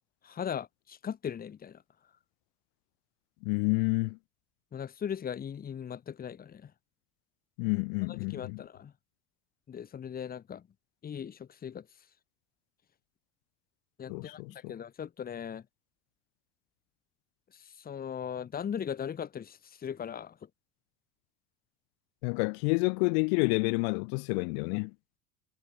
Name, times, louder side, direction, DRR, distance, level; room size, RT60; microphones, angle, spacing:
voice 1, 0.2-1.8 4.7-6.7 8.1-8.9 9.7-10.7 11.0-11.9 14.0-15.6 17.5-20.5, left 8 dB, 25° left, 2.7 m, -39 dB
voice 2, 3.4-4.2 7.6-8.6 14.1-14.5 22.2-24.9, left 38 dB, 75° left, 3.3 m, -29 dB
supercardioid pair, 135°, 32 cm